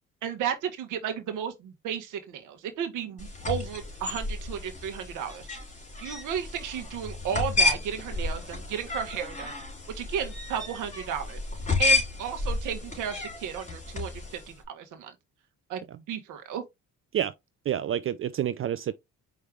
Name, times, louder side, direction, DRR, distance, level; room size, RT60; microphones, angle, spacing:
voice 1, 0.2-5.5 6.0-9.5 9.9-11.4 11.8-15.1 15.7-16.6, right 8 dB, 90° right, 1.3 m, -34 dB
sound 1, 3.2-14.5, left 3 dB, 25° left, 3.2 m, -31 dB
voice 2, 17.7-18.9, right 10 dB, 45° right, 0.4 m, -28 dB
5.0 x 3.1 x 3.4 m
cardioid pair, 90°, 30 cm